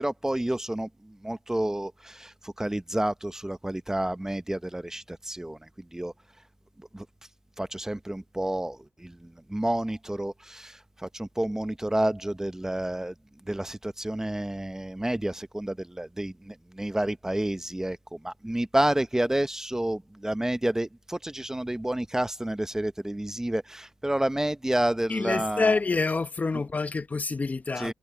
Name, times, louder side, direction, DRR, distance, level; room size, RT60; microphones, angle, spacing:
voice 1, 0.0-6.1 6.9-7.1 7.6-13.1 13.5-25.7 27.8-27.9, right 1 dB, 10° right, 0.9 m, -30 dB
voice 2, 25.1-27.9, left 3 dB, 30° left, 0.9 m, -27 dB
cardioid pair, 70°, 5 cm